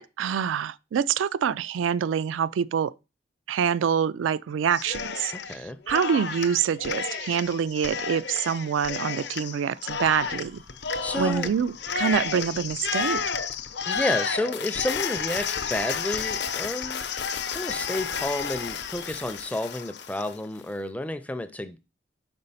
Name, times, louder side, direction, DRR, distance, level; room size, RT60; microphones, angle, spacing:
voice 1, 0.0-2.9 3.5-10.6 11.1-13.2, right 7 dB, 80° right, 0.3 m, -26 dB
Cheering, 4.7-5.6 5.9-20.3, left 6 dB, 60° left, 0.6 m, -31 dB
voice 2, 5.3-5.8 11.0-11.5 13.9-17.1 17.5-21.8, left 1 dB, 10° left, 0.4 m, -31 dB
5.3 x 4.8 x 5.5 m
head